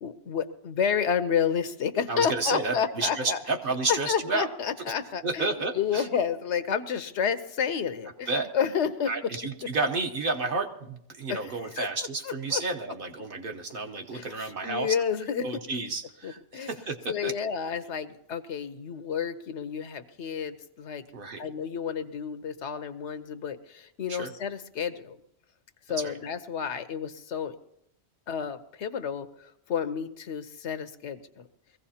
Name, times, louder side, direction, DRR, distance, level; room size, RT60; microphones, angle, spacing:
voice 1, 0.0-3.4 3.9-5.5 5.7-9.1 11.3-11.9 12.2-12.6 14.1-15.5 16.2-16.7 17.1-21.0 21.4-25.2 25.9-27.6 28.3-31.5, left 7 dB, 85° left, 12 dB, 1.1 m, -30 dB
voice 2, 2.1-4.5 5.2-6.1 8.3-8.5 9.0-15.0 15.4-17.0 17.2-17.3 21.1-21.4 24.1-24.3 26.0-26.1, right 3 dB, 55° right, 3 dB, 1.2 m, -31 dB
22.0 x 15.5 x 2.8 m, 0.78 s
omnidirectional pair, 1.1 m